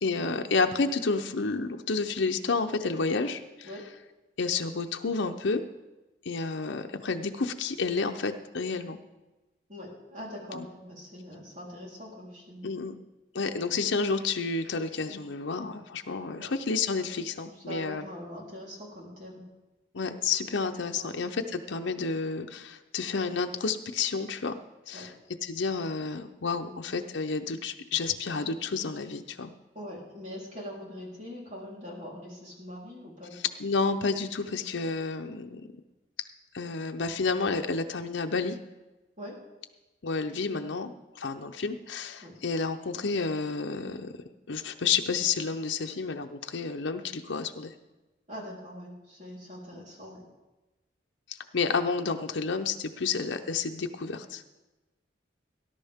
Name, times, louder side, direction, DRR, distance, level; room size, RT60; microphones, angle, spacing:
voice 1, 0.0-3.7 4.4-5.6 6.2-9.0 10.5-10.7 12.6-12.9 13.3-18.1 19.9-24.6 24.9-25.1 25.4-29.5 33.6-35.7 36.5-38.6 40.0-47.7 49.7-49.9 51.3-54.4, left 4 dB, 90° left, 5 dB, 0.7 m, -30 dB
voice 2, 9.7-12.7 16.4-16.5 17.1-17.2 17.5-19.5 20.9-21.1 24.9-25.1 26.6-26.8 29.7-33.5 39.2-39.4 42.2-42.4 48.3-50.3, equal, 40° right, -3 dB, 3.8 m, -43 dB
19.0 x 11.0 x 3.6 m, 1.1 s
head